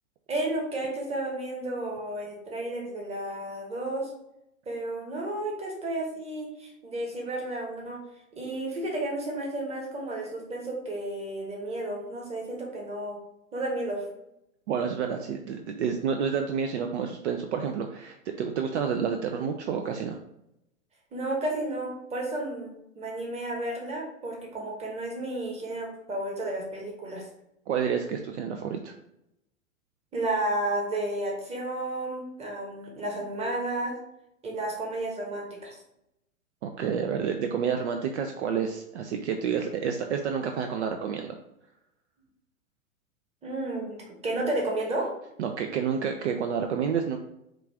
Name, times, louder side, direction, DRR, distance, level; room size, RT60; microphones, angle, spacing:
voice 1, 0.3-4.1 4.7-8.0 8.3-13.2 13.5-14.1 21.1-27.3 30.1-34.0 34.4-35.8 43.4-45.1, right 1 dB, 15° right, -1 dB, 1.1 m, -32 dB
voice 2, 14.7-20.2 27.7-28.9 36.6-41.4 45.4-47.2, right 7 dB, 55° right, 4 dB, 0.5 m, -29 dB
4.9 x 2.4 x 3.5 m, 0.82 s
hypercardioid pair, 110°, 42 cm